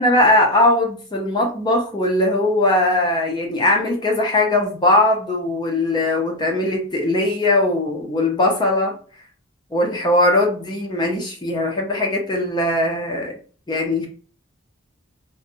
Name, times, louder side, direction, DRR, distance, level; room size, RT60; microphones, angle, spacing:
voice 1, 0.0-8.9 9.7-13.3 13.7-14.1, left 1 dB, 20° left, 1 dB, 0.5 m, -19 dB
2.5 x 2.1 x 2.6 m, 0.41 s
head